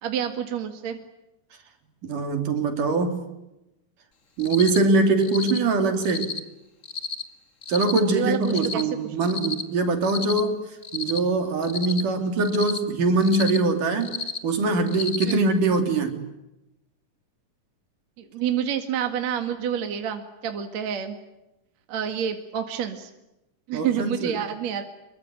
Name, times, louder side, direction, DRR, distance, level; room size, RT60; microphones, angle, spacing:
voice 1, 0.0-1.0 7.9-8.8 15.2-15.4 18.2-21.2 21.9-23.1 23.7-24.8, right 8 dB, 55° right, 6 dB, 3.1 m, -28 dB
voice 2, 2.0-3.2 4.4-6.3 7.7-10.6 10.9-14.2 14.4-16.1 23.7-24.4, right 3 dB, 70° right, 6 dB, 4.7 m, -23 dB
Cricket, 4.4-4.8 5.2-5.6 6.0-6.4 6.8-7.2 7.6-8.0 8.4-8.8 9.2-9.6 10.0-10.4 10.8-11.2 11.6-12.0 12.4-12.8 13.2-13.6 14.0-14.4 14.9-15.3, left 4 dB, 30° left, 1.5 m, -31 dB
26.5 x 23.0 x 9.3 m, 0.91 s
omnidirectional pair, 3.8 m